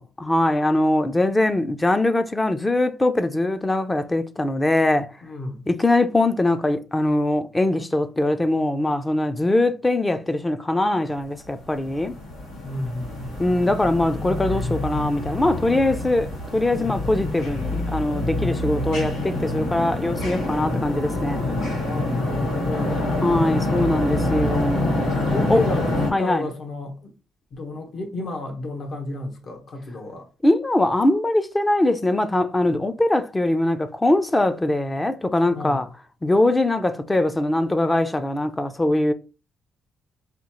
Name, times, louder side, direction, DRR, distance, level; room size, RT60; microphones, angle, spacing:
voice 1, 0.0-5.1 5.7-12.1 13.4-21.4 23.2-25.1 25.5-25.6 26.1-26.4 30.4-35.9 36.2-39.1, left 1 dB, 15° left, 0.5 m, -22 dB
voice 2, 5.2-5.7 12.6-13.4 16.7-16.9 18.7-18.9 21.8-23.2 24.0-24.6 25.3-27.1 27.5-30.3 35.5-35.9, left 2 dB, 55° left, 1.2 m, -32 dB
sound 1, 11.5-26.1, left 2 dB, 90° left, 1.8 m, -26 dB
5.0 x 2.4 x 3.0 m
cardioid pair, 90°, 0 cm